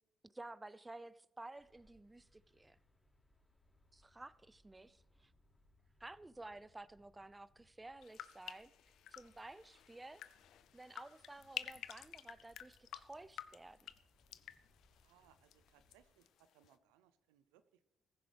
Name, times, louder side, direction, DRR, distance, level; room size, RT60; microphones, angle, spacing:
voice 1, 0.2-2.8 3.9-5.3 6.0-10.2 10.7-13.8, right 2 dB, 20° right, 0.5 m, -53 dB
Regents Park - Birds in Regents Park, 1.5-16.1, left 1 dB, 20° left, 5.0 m, -73 dB
sound 1, 8.0-16.0 16.2-16.7, left 11 dB, 75° left, 0.5 m, -51 dB
voice 2, 14.9-17.8, right 10 dB, 90° right, 0.5 m, -70 dB
15.5 x 15.0 x 3.4 m
hypercardioid pair, 50°, 0 cm